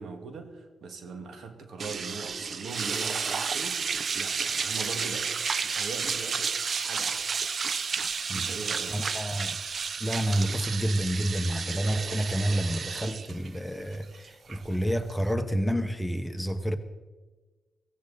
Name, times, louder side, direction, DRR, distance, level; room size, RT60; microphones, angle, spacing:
voice 1, 0.0-7.4 8.3-9.0, right 4 dB, 75° right, 2.0 m, -41 dB
sound 1, 1.8-15.3, right 5 dB, 60° right, 0.7 m, -32 dB
voice 2, 8.9-9.6 10.0-16.8, equal, 5° left, 1.3 m, -29 dB
17.0 x 15.5 x 4.2 m
cardioid pair, 65°, 0 cm